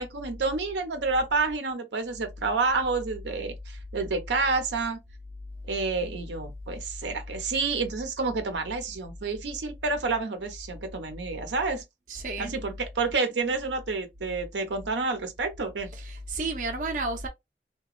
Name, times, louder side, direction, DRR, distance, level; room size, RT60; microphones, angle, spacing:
voice 1, 0.0-5.0 5.7-11.8 12.4-15.9, right 3 dB, 90° right, 0.7 m, -29 dB
voice 2, 12.1-12.5 15.9-17.3, right 3 dB, 45° right, 0.5 m, -32 dB
2.8 x 2.2 x 2.3 m
head